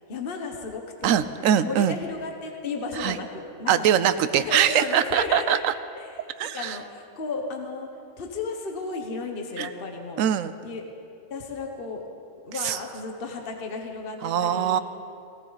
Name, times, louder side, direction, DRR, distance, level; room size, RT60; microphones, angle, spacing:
voice 1, 0.0-3.8 4.2-5.6 5.9-7.9 8.2-10.2 10.6-10.8 11.3-12.0 12.4-14.8, left 4 dB, 45° left, 2 dB, 1.3 m, -34 dB
voice 2, 1.0-2.0 3.0-3.2 3.7-5.7 6.4-6.8 9.6-9.7 10.2-10.5 12.6-12.8 14.2-14.8, right 9 dB, 75° right, 13 dB, 1.0 m, -22 dB
18.0 x 17.0 x 4.0 m, 2.6 s
omnidirectional pair, 1.4 m